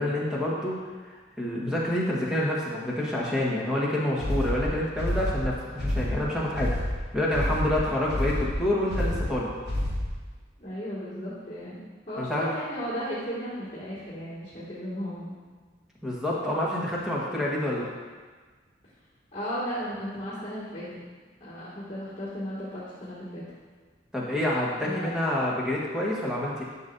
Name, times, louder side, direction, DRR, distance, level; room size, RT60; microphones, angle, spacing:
voice 1, 0.0-6.7 7.1-9.5 12.2-12.5 16.0-17.9 24.1-26.6, left 1 dB, 5° right, -6 dB, 1.5 m, -28 dB
sound 1, 4.2-10.3, left 1 dB, 60° right, 2.0 m, -29 dB
voice 2, 10.6-15.3 19.3-20.9 21.4-23.5 24.8-25.1, equal, 30° left, -13 dB, 2.1 m, -35 dB
11.5 x 6.1 x 2.7 m, 1.4 s
head